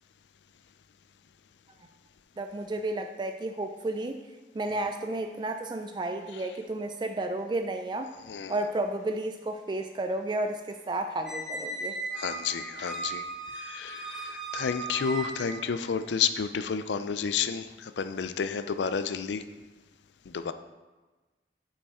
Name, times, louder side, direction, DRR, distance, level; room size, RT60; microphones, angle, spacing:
voice 1, 2.4-4.2 4.5-8.1 8.5-12.0, right 2 dB, 25° right, 6 dB, 0.3 m, -32 dB
voice 2, 8.3-8.6 12.1-13.3 13.5-19.4 20.3-20.5, left 6 dB, 90° left, 10 dB, 0.4 m, -31 dB
Squeak, 11.3-15.7, right 2 dB, 5° right, 0.7 m, -37 dB
8.4 x 5.5 x 3.6 m, 1.2 s
head